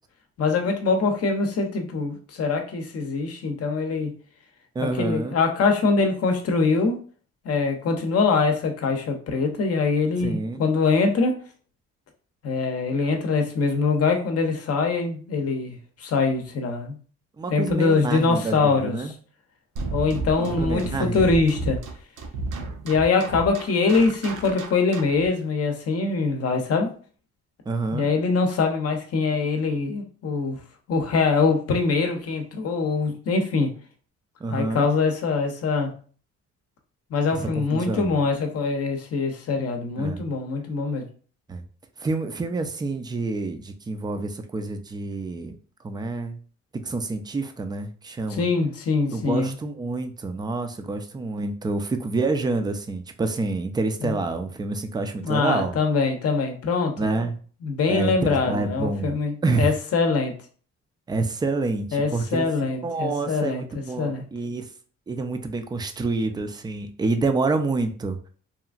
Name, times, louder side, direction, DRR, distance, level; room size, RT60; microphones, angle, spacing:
voice 1, 0.4-4.1 4.8-7.0 7.4-11.3 12.4-16.9 17.5-19.1 19.9-21.8 22.8-26.9 27.9-30.6 30.9-33.7 34.5-35.9 37.1-41.0 48.3-49.6 54.0-54.2 55.2-57.1 57.6-60.3 61.9-64.3, left 4 dB, 50° left, 4 dB, 0.7 m, -23 dB
voice 2, 4.8-5.4 10.2-10.6 17.4-19.1 20.4-21.4 27.7-28.1 34.4-34.9 37.4-38.2 40.0-40.3 41.5-41.6 42.0-45.6 45.8-46.4 46.7-48.5 49.1-55.8 57.0-57.4 57.9-59.1 59.4-59.7 61.1-62.5 62.8-64.7 65.1-68.2, right 3 dB, 15° right, 7 dB, 0.3 m, -27 dB
sound 1, 19.8-25.3, right 3 dB, 85° right, 0.6 m, -32 dB
2.9 x 2.4 x 2.4 m, 0.42 s
cardioid pair, 90°, 30 cm